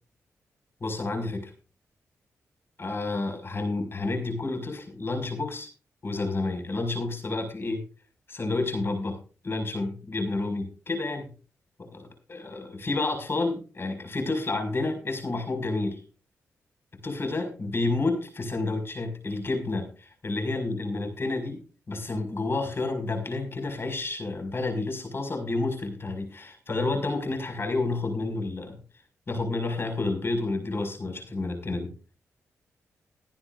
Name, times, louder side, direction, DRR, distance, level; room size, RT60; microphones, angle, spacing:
voice 1, 0.8-1.5 2.8-5.7 6.0-7.8 8.3-9.2 9.4-11.3 11.8-16.0 17.0-21.6 21.9-28.8 29.3-31.9, left 2 dB, 45° left, 5 dB, 5.4 m, -30 dB
21.5 x 9.7 x 2.5 m, 0.36 s
cardioid pair, 60°, 6 cm